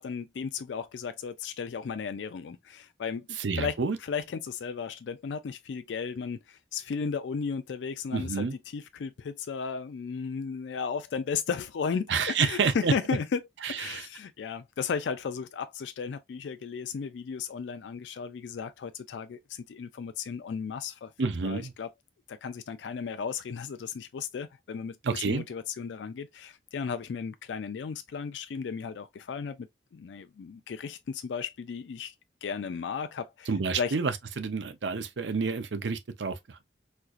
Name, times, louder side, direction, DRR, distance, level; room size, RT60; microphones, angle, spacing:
voice 1, 0.0-13.4 13.7-21.1 21.4-21.9 22.3-25.0 25.3-32.1 32.4-33.5 33.8-34.0, left 6 dB, 85° left, 0.4 m, -35 dB
voice 2, 3.4-4.0 8.1-8.5 12.1-12.9 13.6-14.1 21.2-21.7 25.0-25.4 33.5-36.6, right 5 dB, 90° right, 0.6 m, -29 dB
4.3 x 2.4 x 2.4 m
head